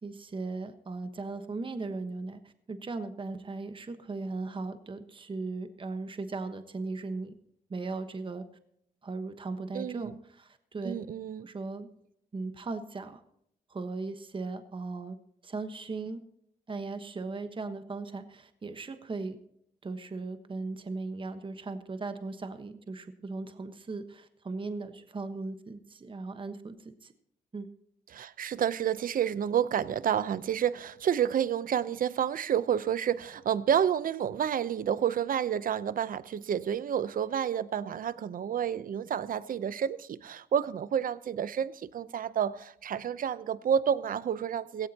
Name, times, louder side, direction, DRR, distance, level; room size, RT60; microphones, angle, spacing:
voice 1, 0.0-7.3 7.7-8.4 9.0-11.0 11.4-11.9 12.3-13.2 13.7-15.2 15.4-16.2 16.7-19.4 19.8-27.1 27.5-27.7, right 3 dB, 30° right, 1.2 m, -38 dB
voice 2, 9.7-10.1 10.8-11.5 28.1-44.9, right 9 dB, 60° right, 0.7 m, -29 dB
16.5 x 16.0 x 2.9 m
cardioid pair, 85°, 16 cm